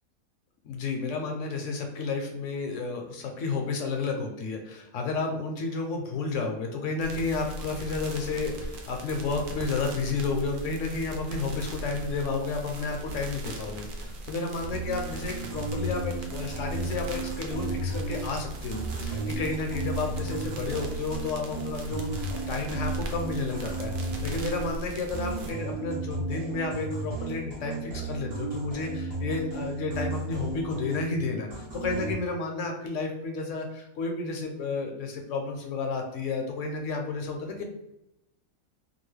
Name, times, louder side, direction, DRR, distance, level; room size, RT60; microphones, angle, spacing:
voice 1, 0.6-37.6, left 3 dB, 70° left, 3 dB, 0.9 m, -31 dB
sound 1, 7.0-25.5, right 2 dB, 65° right, 0.5 m, -39 dB
sound 2, 14.6-18.4 18.7-24.8 25.1-31.2 31.5-32.2, right 2 dB, 30° right, 0.7 m, -34 dB
2.9 x 2.5 x 3.1 m, 0.87 s
omnidirectional pair, 1.5 m